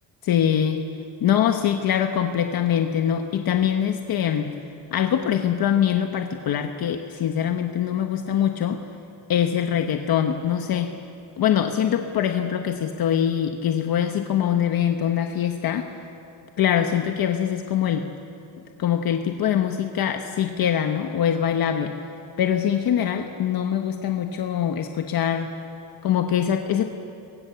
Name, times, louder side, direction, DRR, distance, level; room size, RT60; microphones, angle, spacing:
voice 1, 0.2-0.8 1.2-4.5 4.9-8.8 9.3-10.9 11.4-15.9 16.6-18.1 18.8-22.0 22.4-25.5 26.0-26.9, left 9 dB, 55° left, 5 dB, 1.2 m, -23 dB
29.0 x 23.0 x 7.0 m, 2.7 s
cardioid pair, 160°, 43 cm